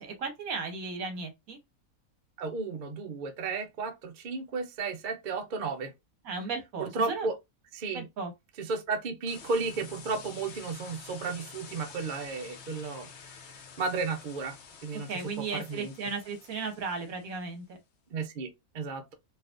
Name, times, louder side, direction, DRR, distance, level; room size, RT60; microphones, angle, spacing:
voice 1, 0.0-1.6 6.2-7.3 7.9-8.3 15.1-17.8, right 4 dB, 75° right, 1.4 m, -35 dB
voice 2, 2.4-5.9 6.8-7.3 7.7-8.1 8.6-13.1 13.8-14.6 14.8-15.9 18.1-19.1, right 4 dB, 60° right, 0.5 m, -33 dB
sound 1, 9.3-17.5, left 6 dB, 60° left, 0.9 m, -49 dB
4.1 x 2.4 x 2.5 m
omnidirectional pair, 1.5 m